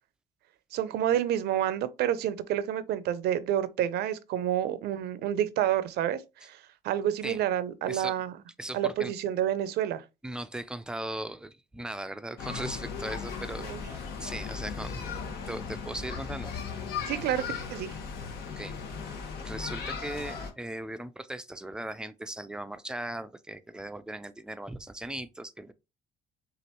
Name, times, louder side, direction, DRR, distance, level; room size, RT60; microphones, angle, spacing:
voice 1, 0.7-6.6 6.8-8.3 8.7-10.0 13.7-13.8 17.1-17.4 17.7-17.9, right 11 dB, 75° right, 0.6 m, -29 dB
voice 2, 7.9-8.2 8.6-9.1 10.2-13.6 14.2-15.1 15.5-16.6 18.5-18.7 19.4-25.7, right 1 dB, 5° right, 0.4 m, -38 dB
sound 1, 12.4-20.5, left 6 dB, 70° left, 1.3 m, -37 dB
6.3 x 2.5 x 2.9 m
cardioid pair, 110°, 17 cm